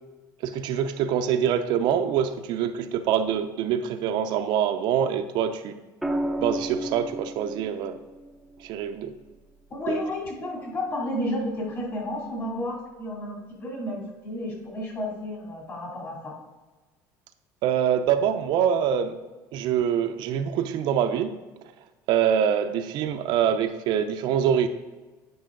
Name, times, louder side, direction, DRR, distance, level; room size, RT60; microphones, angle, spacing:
voice 1, 0.4-5.8 6.4-8.0 8.6-9.1 9.9-10.0 17.6-19.2 19.5-21.4 22.1-24.7, right 8 dB, 65° right, 8 dB, 0.5 m, -25 dB
sound 1, 6.0-10.1 11.8-12.2, right 1 dB, ahead, 0.6 m, -34 dB
voice 2, 9.7-16.3, left 1 dB, 35° left, -2 dB, 2.7 m, -32 dB
9.6 x 5.5 x 3.8 m, 1.2 s
cardioid pair, 145°, 8 cm